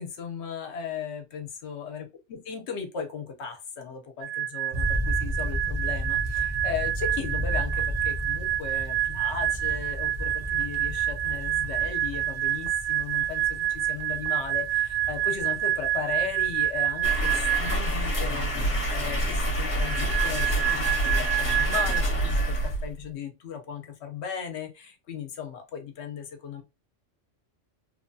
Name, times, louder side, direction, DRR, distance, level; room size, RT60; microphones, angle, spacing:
voice 1, 0.0-26.6, left 7 dB, 65° left, 0.9 m, -37 dB
sound 1, 4.2-17.9 19.8-22.0, right 13 dB, 75° right, 1.0 m, -28 dB
sound 2, 4.7-20.2, equal, 40° right, 0.7 m, -35 dB
sound 3, 17.0-23.1, right 1 dB, 30° left, 0.8 m, -27 dB
3.0 x 2.2 x 2.6 m
omnidirectional pair, 1.3 m